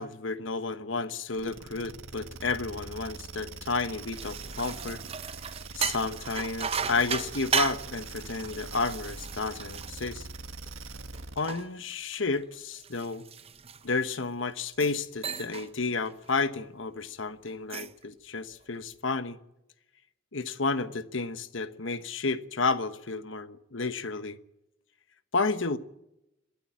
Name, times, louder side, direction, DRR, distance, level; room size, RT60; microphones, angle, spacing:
voice 1, 0.0-5.0 5.7-10.3 11.4-13.3 13.8-19.4 20.3-24.4 25.3-25.8, left 4 dB, 70° left, 1.2 m, -31 dB
sound 1, 1.3-11.5, right 3 dB, 80° right, 1.7 m, -43 dB
sound 2, 3.9-10.7 11.1-14.2 14.7-15.0 15.2-15.7 16.1-16.3 17.5-18.0, right 6 dB, 30° right, 0.8 m, -35 dB
23.0 x 13.5 x 8.7 m
head